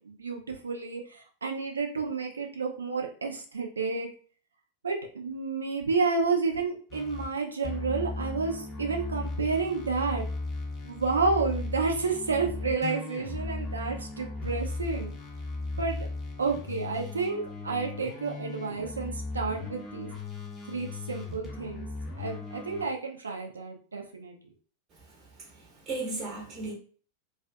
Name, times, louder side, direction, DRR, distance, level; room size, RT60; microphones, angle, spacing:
voice 1, 0.1-4.1 4.8-10.3 10.8-15.1 15.8-16.0 16.4-20.1 20.7-21.9 22.2-24.3, right 4 dB, 75° right, 0.4 m, -30 dB
sound 1, 6.9-7.3 7.6-22.8, left 3 dB, 25° left, 0.6 m, -37 dB
voice 2, 24.9-26.7, right 2 dB, 25° right, 0.8 m, -37 dB
2.4 x 2.3 x 2.3 m
figure-of-eight pair, 90°, 0 cm